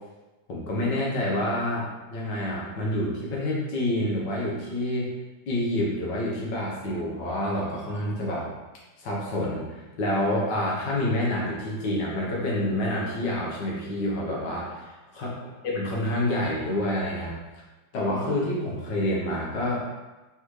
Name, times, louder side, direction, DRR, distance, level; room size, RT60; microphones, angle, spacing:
voice 1, 0.5-5.1 5.5-8.5 9.0-9.6 10.0-15.3 15.6-17.4 17.9-19.8, left 1 dB, 75° left, -4 dB, 1.6 m, -28 dB
4.1 x 3.5 x 3.0 m, 1.2 s
omnidirectional pair, 2.0 m